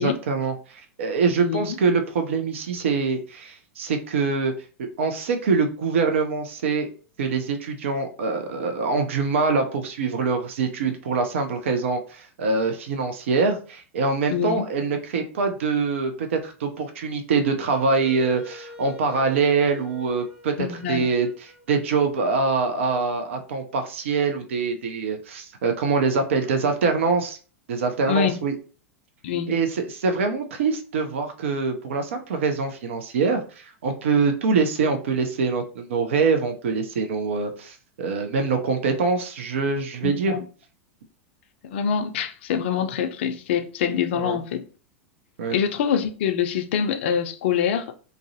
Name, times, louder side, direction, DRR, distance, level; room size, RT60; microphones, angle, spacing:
voice 1, 0.0-4.5 4.8-6.9 7.2-27.4 27.7-28.5 29.5-40.4 44.1-44.4 45.4-45.6, right 4 dB, 65° right, 0.4 m, -24 dB
voice 2, 1.4-1.8 14.3-14.7 20.6-21.1 28.1-28.4 29.2-29.6 40.0-40.4 41.6-44.7 45.5-48.0, left 7 dB, 55° left, 0.4 m, -25 dB
Wind instrument woodwind instrument, 17.5-22.5, left 2 dB, 35° right, 1.0 m, -47 dB
2.4 x 2.0 x 2.6 m
figure-of-eight pair, 90°, 7 cm